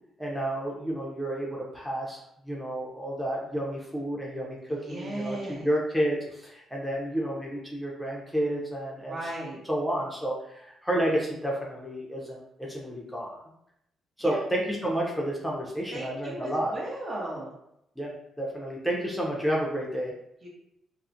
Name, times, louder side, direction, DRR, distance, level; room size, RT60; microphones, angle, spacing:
voice 1, 0.2-2.2 2.4-9.3 9.6-13.4 14.2-16.8 18.0-18.1 18.4-20.1, right 1 dB, 5° left, -3 dB, 0.6 m, -30 dB
voice 2, 4.7-5.7 9.1-9.6 14.2-14.4 15.9-17.5 20.4-20.5, right 1 dB, 40° right, -3 dB, 0.8 m, -36 dB
2.3 x 2.1 x 2.7 m, 0.79 s
cardioid pair, 80°, 0 cm